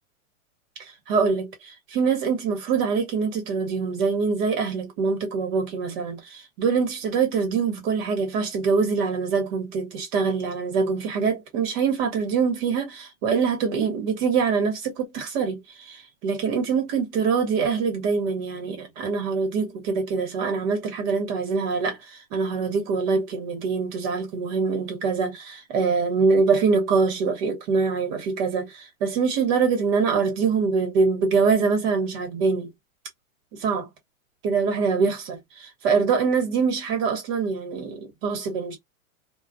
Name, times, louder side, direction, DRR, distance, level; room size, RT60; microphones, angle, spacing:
voice 1, 1.1-32.7 33.6-33.9 34.4-38.8, right 5 dB, 40° right, 1.2 m, -24 dB
2.3 x 2.2 x 2.5 m
hypercardioid pair, 140°, 44 cm